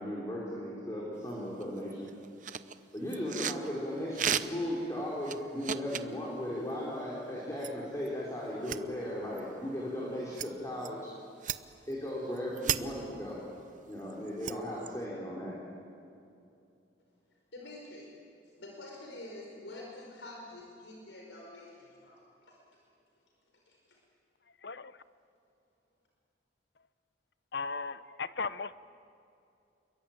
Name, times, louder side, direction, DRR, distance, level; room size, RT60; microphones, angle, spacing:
voice 1, 0.0-2.1 2.9-11.1 11.9-13.4 13.9-15.5, equal, 15° left, 4.6 m, -36 dB
sound 1, 1.3-1.4 1.6-3.7 4.1-4.7 5.2-6.1 7.6-7.7 8.0-8.1 8.6-8.8 9.4-9.5 10.3-10.5 10.8-10.9 11.4-11.9 12.4-12.8 13.9-15.0, right 9 dB, 45° right, 0.7 m, -34 dB
voice 2, 17.5-18.1 18.6-22.6 23.7-24.0, left 1 dB, 85° left, 5.2 m, -47 dB
voice 3, 24.6-24.9 27.5-28.7, left 4 dB, 65° left, 0.8 m, -36 dB
29.0 x 23.0 x 9.0 m
head